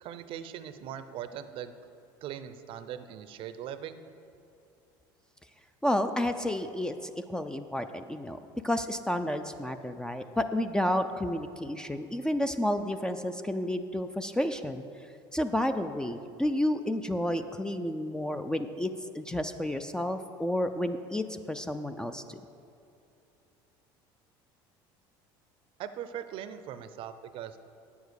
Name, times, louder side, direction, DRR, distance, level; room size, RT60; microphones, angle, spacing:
voice 1, 0.0-1.7 2.2-4.0 25.8-27.6, right 9 dB, 55° right, 11 dB, 0.6 m, -40 dB
voice 2, 5.8-8.4 8.6-14.8 15.3-22.4, left 1 dB, 5° left, 8 dB, 0.4 m, -31 dB
9.0 x 7.1 x 6.4 m, 2.6 s
supercardioid pair, 115°, 11 cm